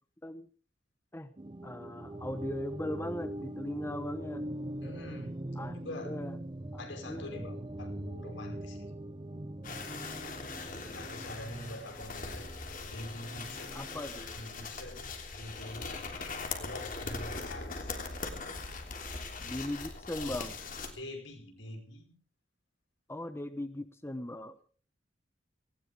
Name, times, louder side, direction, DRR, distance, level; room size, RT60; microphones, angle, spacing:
sound 1, 1.4-14.0, right 1 dB, 25° right, 0.7 m, -42 dB
voice 1, 1.6-4.4 5.6-5.8 6.1-6.4 7.1-7.3 13.7-14.4 19.4-20.5 23.1-24.6, left 1 dB, 15° left, 10 dB, 1.0 m, -39 dB
voice 2, 4.8-5.4 5.7-6.2 6.8-8.9 10.9-12.5 12.8-13.9 14.3-16.1 16.6-18.0 21.0-22.2, left 1 dB, 80° left, 4 dB, 5.3 m, -45 dB
sound 2, 9.6-20.9, left 4 dB, 50° left, 3.2 m, -41 dB
19.0 x 17.0 x 3.6 m, 0.41 s
head